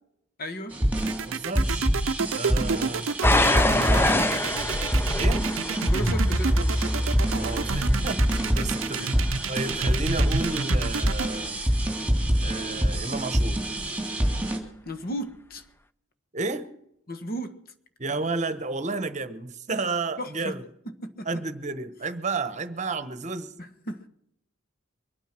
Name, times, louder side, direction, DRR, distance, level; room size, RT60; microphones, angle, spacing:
voice 1, 0.4-0.8 3.7-4.6 5.9-6.9 8.6-9.1 14.8-15.6 17.1-17.7 20.2-20.5 21.0-21.3 23.6-24.1, equal, 50° left, 1.5 m, -35 dB
sound 1, 0.7-14.6, equal, 5° right, 3.1 m, -25 dB
sound 2, 1.0-11.3, right 6 dB, 75° right, 0.6 m, -30 dB
voice 2, 1.3-2.0 2.3-3.1 3.3-4.1 5.2-5.5 7.3-8.2 8.5-9.1 9.5-11.6 12.4-13.7 16.3-16.7 18.0-20.6 21.2-23.5, right 3 dB, 35° right, 1.1 m, -31 dB
sound 3, 3.2-12.0 12.8-13.2 13.8-13.9, left 2 dB, 10° left, 0.5 m, -28 dB
23.5 x 9.2 x 6.0 m
head